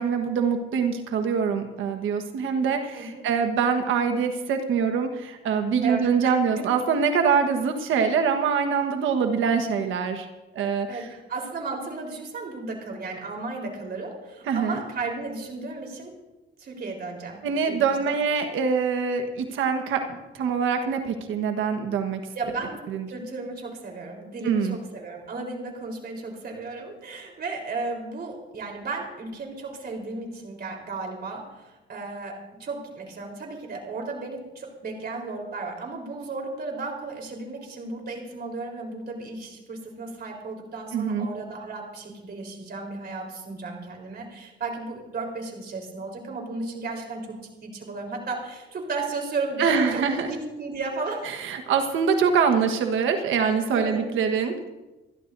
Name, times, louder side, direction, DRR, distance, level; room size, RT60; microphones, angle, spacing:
voice 1, 0.0-10.3 10.5-11.0 14.5-14.8 17.4-22.2 22.9-23.1 24.4-24.8 40.9-41.3 49.6-50.3 51.2-54.6, right 6 dB, 80° right, 6 dB, 1.4 m, -24 dB
voice 2, 2.9-3.2 5.8-6.8 10.9-16.1 16.6-18.1 22.3-22.8 23.1-51.2 53.7-54.0, right 3 dB, 50° right, 1 dB, 4.0 m, -34 dB
28.5 x 11.5 x 2.7 m, 1.1 s
cardioid pair, 90°, 20 cm